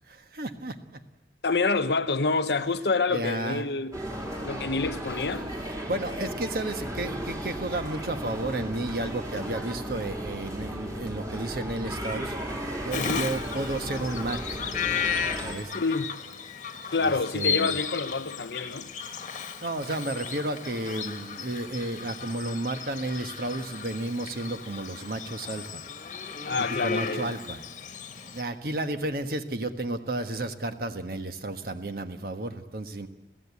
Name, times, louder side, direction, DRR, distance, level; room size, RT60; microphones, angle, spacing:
voice 1, 0.1-1.0 3.1-3.7 5.9-14.6 15.4-15.7 17.0-17.7 19.6-25.8 26.6-27.6 28.3-33.1, right 2 dB, 55° right, 1.4 m, -32 dB
voice 2, 1.4-4.0 4.4-5.5 12.9-13.3 15.7-16.2 16.9-18.9 26.4-27.3, left 3 dB, 70° left, 0.9 m, -27 dB
sound 1, 3.9-15.5, right 1 dB, 20° right, 3.3 m, -35 dB
Bird vocalization bird call bird song, 12.9-28.4, left 7 dB, 45° left, 1.3 m, -35 dB
28.0 x 15.5 x 8.4 m
head